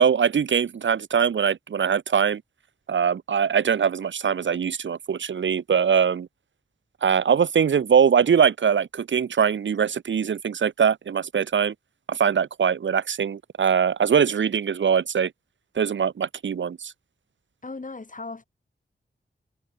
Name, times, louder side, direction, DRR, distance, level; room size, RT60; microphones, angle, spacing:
voice 1, 0.0-2.4 2.9-6.3 7.0-11.7 12.1-15.3 15.8-16.9, right 7 dB, 75° right, 0.9 m, -22 dB
voice 2, 17.6-18.4, left 3 dB, 40° left, 4.1 m, -37 dB
cardioid pair, 55°, 19 cm